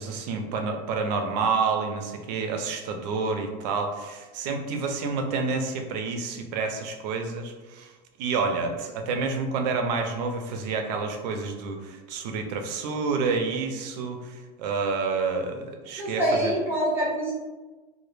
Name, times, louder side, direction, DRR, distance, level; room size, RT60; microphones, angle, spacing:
voice 1, 0.0-7.9 8.2-16.5, right 4 dB, 80° right, 4 dB, 0.5 m, -29 dB
voice 2, 16.0-17.3, equal, 10° right, -7 dB, 0.5 m, -25 dB
2.1 x 2.0 x 3.0 m, 1.2 s
cardioid pair, 175°, 21 cm